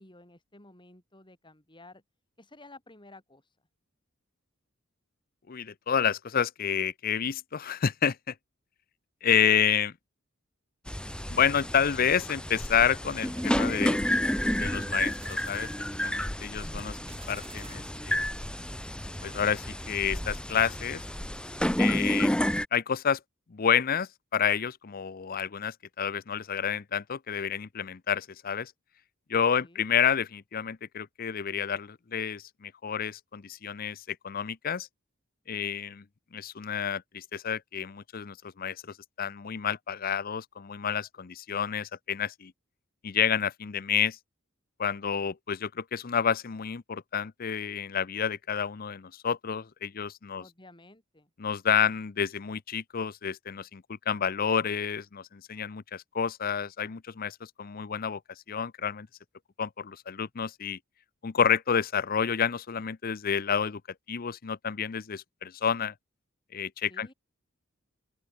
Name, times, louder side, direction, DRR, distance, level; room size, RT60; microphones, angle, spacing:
voice 1, 0.0-2.0 2.4-3.4 29.5-29.8 50.4-51.3 66.9-67.1, left 2 dB, 25° left, 7.4 m, -53 dB
voice 2, 5.5-8.3 9.2-9.9 11.3-14.0 14.5-18.3 19.2-21.0 21.8-22.4 22.7-23.2 23.5-28.7 29.3-34.9 35.5-36.0 36.3-38.8 39.2-42.5 43.0-44.2 44.8-50.4 51.4-58.2 58.5-59.1 59.6-60.8 61.2-63.8 64.1-65.9 66.5-67.1, left 7 dB, 45° left, 0.6 m, -29 dB
sound 1, 10.9-22.6, equal, 5° left, 1.5 m, -30 dB
sound 2, 13.3-19.0, right 4 dB, 30° right, 5.0 m, -54 dB
open air
head